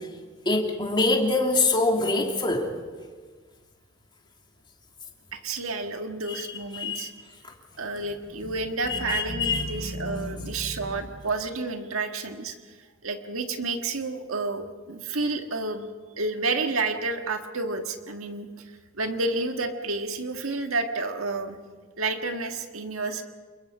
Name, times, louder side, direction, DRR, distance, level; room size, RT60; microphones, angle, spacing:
voice 1, 0.4-2.7 6.3-6.4 6.7-7.1 8.9-10.9, left 2 dB, 25° left, 0 dB, 3.1 m, -25 dB
voice 2, 5.3-7.1 7.8-12.6 13.0-15.9 16.2-18.7 19.0-21.6 22.0-23.2, right 3 dB, 80° right, 5 dB, 1.7 m, -30 dB
28.5 x 21.5 x 5.6 m, 1.5 s
head